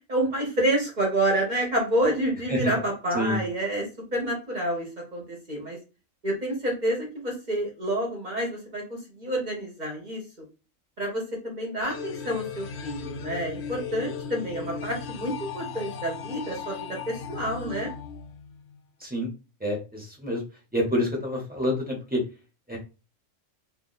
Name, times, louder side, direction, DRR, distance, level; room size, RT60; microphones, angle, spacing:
voice 1, 0.1-3.8 4.1-5.8 6.2-10.4 11.0-17.9, right 1 dB, 40° right, -1 dB, 1.1 m, -28 dB
sound 1, 11.8-18.8, left 6 dB, 65° left, 0.7 m, -37 dB
voice 2, 19.6-20.4 20.7-22.2 22.7-22.8, left 1 dB, 10° right, -3 dB, 1.1 m, -27 dB
2.7 x 2.6 x 4.0 m, 0.31 s
omnidirectional pair, 1.3 m